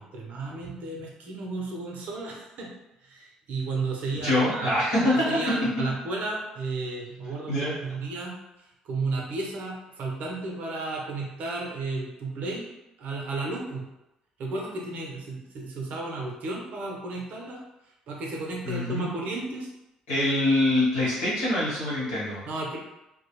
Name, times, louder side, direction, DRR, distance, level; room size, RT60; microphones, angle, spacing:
voice 1, 0.0-2.7 3.0-4.7 5.0-8.4 8.8-12.7 13.0-13.9 14.4-17.6 18.1-19.7 22.5-22.8, right 3 dB, 65° right, -1 dB, 0.6 m, -33 dB
voice 2, 4.2-5.4 7.5-7.7 18.6-19.1 20.1-22.4, left 1 dB, 85° left, -8 dB, 1.1 m, -24 dB
2.3 x 2.1 x 2.9 m, 0.93 s
hypercardioid pair, 55°, 3 cm